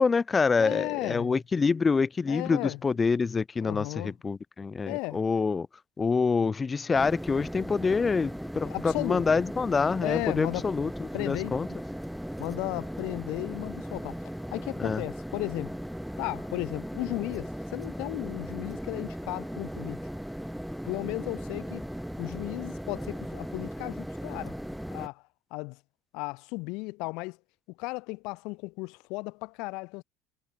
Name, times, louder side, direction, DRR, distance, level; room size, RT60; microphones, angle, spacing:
voice 1, 0.0-5.7 6.0-11.7 14.8-15.0, left 4 dB, 25° left, 1.6 m, -26 dB
voice 2, 0.6-1.4 2.3-2.8 3.6-4.1 4.8-5.2 8.6-9.3 10.0-10.6 11.1-11.6 12.4-15.8 16.2-20.1 20.8-21.9 22.2-24.6 24.9-25.2 25.5-25.8 26.1-27.4 27.8-30.0, left 26 dB, 75° left, 5.7 m, -35 dB
sound 1, 6.9-25.1, equal, ahead, 4.6 m, -37 dB
supercardioid pair, 100°, 0 cm